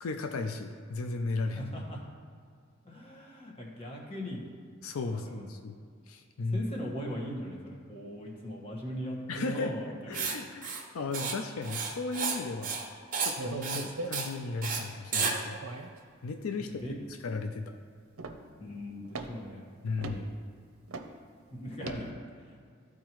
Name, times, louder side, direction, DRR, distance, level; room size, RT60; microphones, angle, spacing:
voice 1, 0.0-1.8 4.8-5.7 6.1-6.6 9.3-9.8 10.1-12.8 13.2-15.6 16.2-17.8 19.8-20.2, left 3 dB, 85° left, 6 dB, 0.4 m, -35 dB
voice 2, 1.5-2.0 2.8-4.4 5.0-5.5 6.5-10.2 16.8-17.0 18.6-20.2 21.5-22.1, equal, 30° left, -3 dB, 1.4 m, -39 dB
Writing, 10.1-10.3 10.6-10.8 11.1-11.3 11.6-12.4 12.6-12.9 13.1-13.3 13.6-13.8 14.1-14.3 14.6-14.8 15.1-15.3, right 5 dB, 40° right, 0.9 m, -32 dB
sound 1, 13.4-14.3 15.2-16.0 18.2-18.5 19.0-19.5 20.0-20.3 20.9-21.1 21.8-22.1, right 3 dB, 80° right, 0.6 m, -39 dB
13.5 x 4.6 x 3.0 m, 2.2 s
head